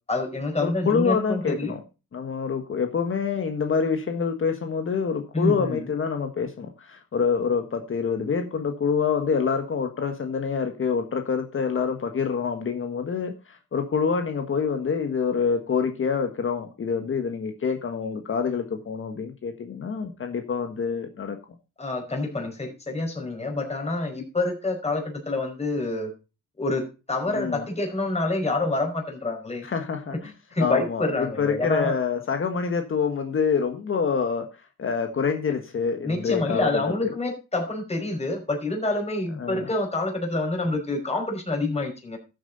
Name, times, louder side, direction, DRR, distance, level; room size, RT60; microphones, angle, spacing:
voice 1, 0.1-1.7 5.3-5.8 21.8-26.1 26.6-29.7 30.5-32.0 36.0-42.2, left 2 dB, 20° left, 2 dB, 5.3 m, -27 dB
voice 2, 0.6-1.8 2.1-21.4 27.3-27.6 29.6-30.3 30.6-34.5 34.8-36.9 39.4-39.7, left 6 dB, 45° left, 6 dB, 1.6 m, -26 dB
13.5 x 7.8 x 4.1 m, 0.30 s
cardioid pair, 90°, 30 cm